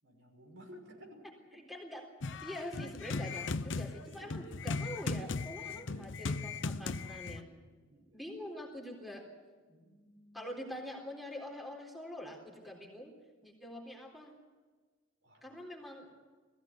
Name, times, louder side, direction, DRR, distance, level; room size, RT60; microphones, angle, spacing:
voice 1, 0.0-1.3 4.0-4.5 5.7-6.1 7.3-8.2 9.6-10.5 15.2-15.5, equal, 70° right, 2 dB, 5.9 m, -56 dB
voice 2, 1.5-7.5 8.1-9.2 10.3-13.1 13.4-14.3 15.4-16.1, equal, ahead, 0 dB, 3.8 m, -45 dB
sound 1, 2.2-7.4, left 3 dB, 70° left, 0.7 m, -37 dB
20.5 x 16.0 x 9.6 m, 1.4 s
head